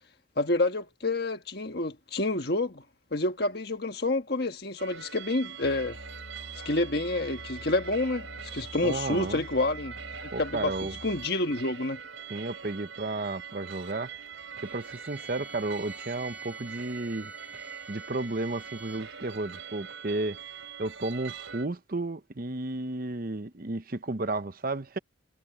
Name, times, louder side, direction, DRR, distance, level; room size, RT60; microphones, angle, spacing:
voice 1, 0.4-2.8 3.1-6.0 6.6-8.2 8.5-9.9 10.4-10.7 11.0-12.0, left 2 dB, 50° left, 1.5 m, -28 dB
sound 1, 4.8-21.7, right 7 dB, 85° right, 4.0 m, -43 dB
Musical instrument, 5.6-11.3, left 1 dB, 80° left, 3.3 m, -46 dB
voice 2, 8.8-9.4 10.3-11.0 12.3-14.1 14.6-17.3 17.9-20.4 20.8-25.0, right 2 dB, 45° right, 0.9 m, -33 dB
Bowed string instrument, 14.6-19.1, right 2 dB, 5° right, 6.0 m, -50 dB
head